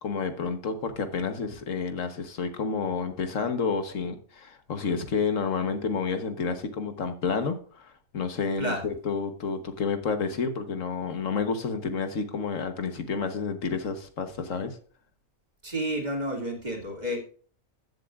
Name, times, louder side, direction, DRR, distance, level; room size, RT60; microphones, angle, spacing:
voice 1, 0.0-14.8, left 5 dB, 75° left, 8 dB, 1.5 m, -30 dB
voice 2, 15.6-17.2, equal, 35° right, 1 dB, 2.5 m, -30 dB
14.5 x 7.9 x 2.4 m, 0.43 s
omnidirectional pair, 1.3 m